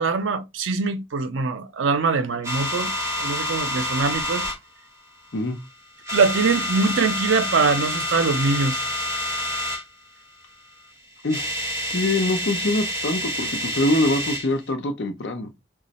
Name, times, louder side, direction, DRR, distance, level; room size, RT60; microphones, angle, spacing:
voice 1, 0.0-2.9 3.2-4.5 6.1-8.8, right 4 dB, 80° right, 0.5 m, -23 dB
sound 1, 2.4-4.6 5.3-5.7 6.0-9.9 10.9-11.0 11.2-14.5, left 1 dB, 15° right, 1.3 m, -28 dB
voice 2, 11.9-15.5, left 1 dB, 65° left, 0.6 m, -24 dB
3.1 x 2.3 x 4.0 m
head